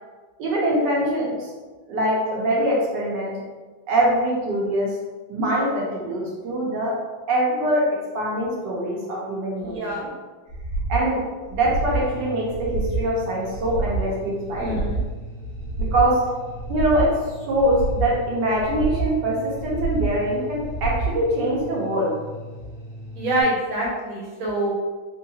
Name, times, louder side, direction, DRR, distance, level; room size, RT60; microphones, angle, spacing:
voice 1, 0.4-1.5 1.9-3.3 3.9-4.9 5.3-6.9 7.3-7.8 8.1-10.1 10.9-11.2 11.5-14.8 15.8-16.2 16.7-17.1 17.5-22.1, right 1 dB, 65° right, -4 dB, 1.2 m, -23 dB
voice 2, 9.6-10.0 14.6-15.0 23.2-24.7, right 1 dB, 85° right, -4 dB, 1.7 m, -25 dB
sound 1, 10.5-11.0 11.5-12.1 12.5-13.1 13.5-14.1 14.5-15.1 15.5-16.1 16.5-17.1 17.5-18.1 18.5-19.1 19.5-20.1 20.6-21.1 21.6-21.7, right 3 dB, 80° left, 1.4 m, -27 dB
sound 2, 11.6-23.4, equal, 40° left, 0.9 m, -39 dB
3.6 x 2.2 x 2.7 m, 1.3 s
omnidirectional pair, 2.2 m